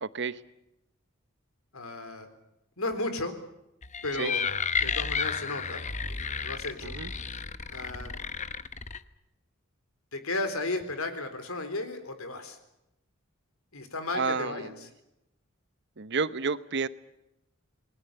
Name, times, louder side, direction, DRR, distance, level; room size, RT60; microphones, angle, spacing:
voice 1, 0.0-0.4 4.2-4.3 6.8-7.1 14.1-14.7 16.0-16.9, right 4 dB, 55° right, 15 dB, 1.0 m, -30 dB
voice 2, 1.7-2.3 2.8-3.3 4.0-4.5 4.8-7.0 7.7-8.1 10.1-12.6 13.7-14.9, left 2 dB, 85° left, 9 dB, 3.9 m, -34 dB
sound 1, 3.8-9.0, left 5 dB, 35° left, 0.9 m, -32 dB
27.5 x 20.5 x 6.9 m, 0.87 s
head